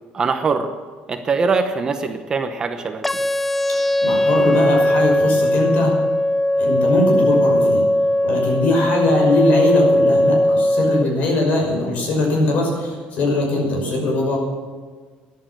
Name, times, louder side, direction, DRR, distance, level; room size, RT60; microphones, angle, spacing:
voice 1, 0.1-0.7 1.1-3.2, right 4 dB, 25° right, 6 dB, 0.9 m, -22 dB
sound 1, 3.0-11.0, left 1 dB, 5° left, 0.4 m, -18 dB
voice 2, 3.7-5.9 6.6-7.8 8.2-14.4, left 2 dB, 50° left, 0 dB, 5.9 m, -20 dB
14.0 x 11.5 x 7.6 m, 1.5 s
cardioid pair, 170°, 3 cm